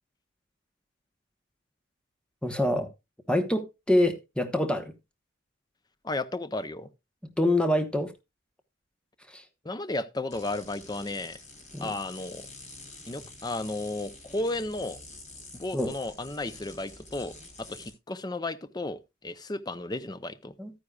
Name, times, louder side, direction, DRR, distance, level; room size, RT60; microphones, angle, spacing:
voice 1, 2.4-2.9 3.3-4.9 7.4-8.1 9.3-9.4 11.7-11.9 15.7-15.9 20.6-20.7, left 1 dB, 5° left, 1.0 m, -25 dB
voice 2, 6.0-6.9 9.6-11.4 11.8-12.5 13.1-15.0 15.5-20.5, left 2 dB, 20° left, 0.6 m, -34 dB
sound 1, 10.3-17.9, left 2 dB, 35° left, 5.2 m, -47 dB
12.5 x 9.7 x 2.3 m
head